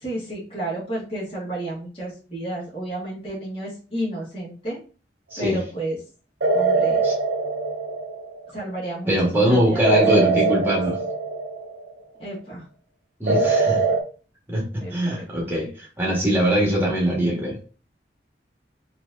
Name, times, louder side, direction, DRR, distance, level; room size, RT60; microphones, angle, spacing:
voice 1, 0.0-4.8 5.4-6.0 6.5-7.0 8.5-10.6 12.2-12.6 13.3-14.0 14.8-15.3, right 1 dB, 30° left, 1.7 m, -32 dB
sound 1, 6.4-8.5 9.8-11.9 13.3-14.0, right 3 dB, 80° right, 0.7 m, -22 dB
voice 2, 9.0-11.0 13.2-13.8 14.5-17.6, right 1 dB, 15° right, 1.5 m, -22 dB
4.4 x 3.0 x 2.6 m
head